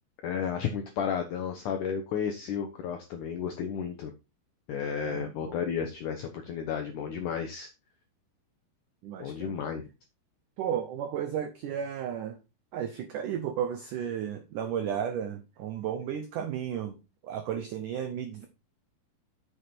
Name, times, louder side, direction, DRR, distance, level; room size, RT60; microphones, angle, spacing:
voice 1, 0.2-4.1 4.7-7.7 9.2-9.8, left 7 dB, 80° left, 5 dB, 1.8 m, -32 dB
voice 2, 5.0-5.6 9.0-9.5 10.6-12.4 12.7-17.0 17.2-18.5, right 9 dB, 90° right, 7 dB, 1.8 m, -33 dB
7.1 x 6.5 x 4.4 m, 0.28 s
omnidirectional pair, 4.9 m